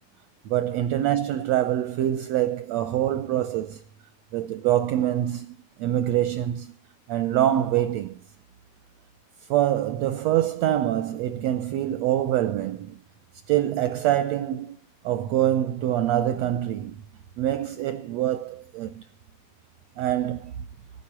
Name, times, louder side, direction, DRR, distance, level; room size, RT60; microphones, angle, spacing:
voice 1, 0.5-3.8 4.3-6.7 7.1-8.2 9.5-13.0 13.5-14.8 15.0-17.0 17.4-19.0 20.0-20.5, right 12 dB, 75° right, 1.6 m, -25 dB
11.5 x 9.7 x 7.3 m
omnidirectional pair, 3.9 m